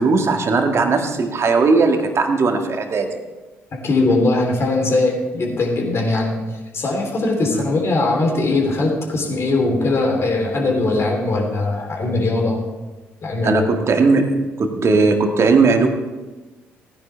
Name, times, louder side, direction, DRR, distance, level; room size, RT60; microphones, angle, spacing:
voice 1, 0.0-3.1 7.5-7.7 13.4-15.9, right 4 dB, 45° right, 4 dB, 1.7 m, -17 dB
voice 2, 3.8-6.4 6.7-12.6 13.2-13.7, left 2 dB, 45° left, 0 dB, 3.4 m, -20 dB
17.0 x 9.9 x 3.4 m, 1.2 s
hypercardioid pair, 50°, 6 cm